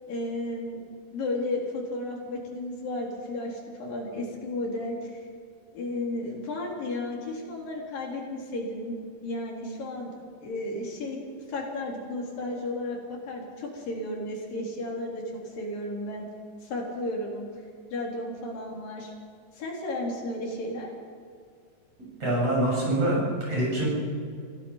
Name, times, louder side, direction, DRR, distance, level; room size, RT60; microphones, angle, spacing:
voice 1, 0.1-0.8 1.1-5.2 5.7-11.2 11.5-16.3 16.6-17.5 17.9-19.1 19.5-20.9, left 1 dB, 80° left, -2 dB, 5.4 m, -33 dB
voice 2, 22.2-23.9, right 1 dB, 45° right, -4 dB, 8.7 m, -25 dB
27.5 x 16.5 x 5.7 m, 2.2 s
omnidirectional pair, 3.9 m